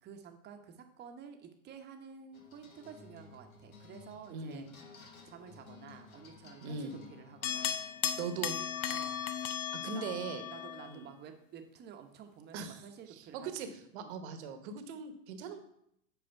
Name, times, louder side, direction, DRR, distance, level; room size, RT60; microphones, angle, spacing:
voice 1, 0.0-4.7 5.3-7.8 8.9-9.3 9.9-10.1 10.5-14.2, right 7 dB, 25° right, 5 dB, 0.9 m, -51 dB
sound 1, 2.3-9.9, left 5 dB, 85° left, 1.4 m, -57 dB
voice 2, 4.3-4.6 6.6-6.9 8.2-8.6 9.8-10.4 10.9-11.1 12.5-12.8 13.1-13.7 13.9-15.6, right 5 dB, 55° right, 8 dB, 1.1 m, -40 dB
sound 2, 7.4-11.0, left 9 dB, 65° left, 0.8 m, -36 dB
8.0 x 4.9 x 4.5 m, 0.74 s
hypercardioid pair, 115°, 41 cm